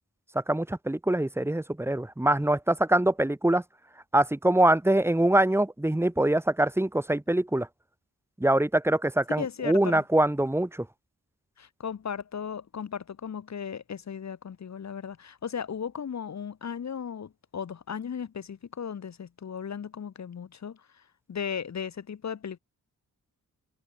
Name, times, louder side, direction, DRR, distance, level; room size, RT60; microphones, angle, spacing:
voice 1, 0.3-3.6 4.1-7.7 8.4-10.9, right 1 dB, 5° right, 0.8 m, -24 dB
voice 2, 9.4-10.0 11.6-22.6, left 7 dB, 45° left, 0.7 m, -36 dB
cardioid pair, 40°, 40 cm